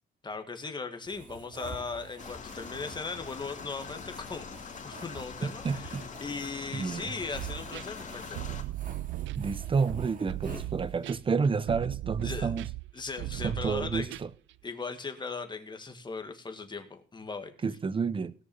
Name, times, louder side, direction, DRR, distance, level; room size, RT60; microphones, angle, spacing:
voice 1, 0.2-8.4 10.4-10.6 12.2-12.5 12.9-14.2 14.6-17.5, left 4 dB, 25° left, 2.1 m, -38 dB
sound 1, 1.0-11.2, right 3 dB, 45° right, 2.6 m, -49 dB
sound 2, 2.2-8.6, left 6 dB, 40° left, 2.6 m, -43 dB
voice 2, 5.4-6.0 6.7-7.1 9.4-12.7 13.4-14.3 17.6-18.3, right 5 dB, 25° right, 0.8 m, -30 dB
sound 3, 7.3-14.5, right 16 dB, 80° right, 0.5 m, -37 dB
17.5 x 6.5 x 7.2 m
cardioid pair, 115°, 19 cm